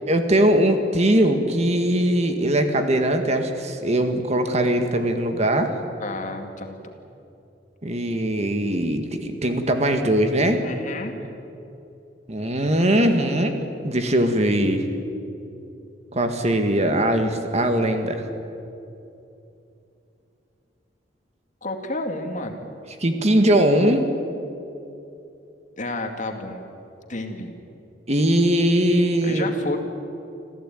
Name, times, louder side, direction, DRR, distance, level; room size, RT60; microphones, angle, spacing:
voice 1, 0.1-5.7 7.8-10.6 12.3-14.9 16.1-18.2 23.0-24.0 28.1-29.5, right 1 dB, 40° right, 6 dB, 1.9 m, -21 dB
voice 2, 6.0-6.7 10.6-11.1 21.6-22.7 25.8-26.6 27.1-27.6 29.2-29.8, left 2 dB, 45° left, 5 dB, 2.3 m, -30 dB
27.0 x 15.0 x 9.2 m, 2.8 s
head